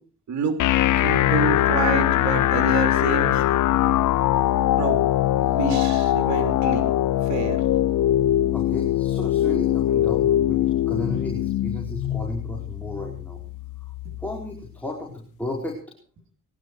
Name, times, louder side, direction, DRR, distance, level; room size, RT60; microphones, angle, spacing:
sound 1, 0.6-14.6, left 13 dB, 80° left, 0.8 m, -22 dB
voice 1, 1.0-3.4 4.8-5.0 5.4-6.8 7.3-7.6, right 6 dB, 65° right, 5 dB, 3.2 m, -28 dB
voice 2, 8.5-10.6 10.9-13.4 13.8-13.9 14.2-15.8, left 1 dB, 5° left, -2 dB, 4.8 m, -33 dB
21.5 x 12.0 x 4.8 m, 0.40 s
cardioid pair, 90°, 30 cm